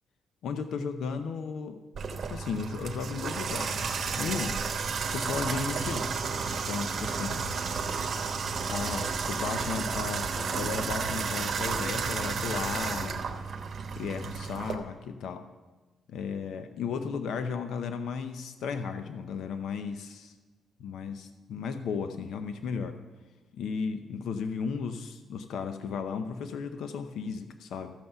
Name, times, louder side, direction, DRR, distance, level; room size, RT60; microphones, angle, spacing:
voice 1, 0.4-1.8 2.2-4.6 5.1-6.3 6.7-7.4 8.6-13.4 14.0-15.4 16.1-20.3 20.8-23.0 23.5-27.9, left 5 dB, 80° left, 8 dB, 0.7 m, -35 dB
Water tap faucet / Bathtub (filling or washing), 2.0-14.8, right 5 dB, 55° right, 1.2 m, -32 dB
14.0 x 5.6 x 6.9 m, 1.2 s
cardioid pair, 100°, 0 cm